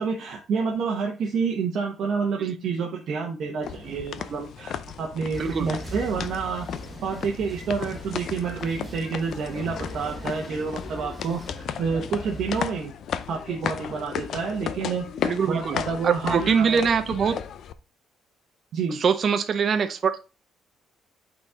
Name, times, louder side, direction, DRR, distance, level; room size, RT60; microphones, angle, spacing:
voice 1, 0.0-6.7 7.0-12.9 13.3-15.0 15.4-16.8 18.7-19.0, right 5 dB, 50° right, 1.1 m, -28 dB
sound 1, 3.6-17.7, left 8 dB, 50° left, 0.5 m, -35 dB
sound 2, 5.3-12.6, equal, 10° right, 1.0 m, -40 dB
voice 2, 5.4-5.7 15.2-15.8 16.0-17.4 18.9-20.2, right 6 dB, 35° right, 0.6 m, -23 dB
8.5 x 4.1 x 3.5 m
cardioid pair, 165°, 0 cm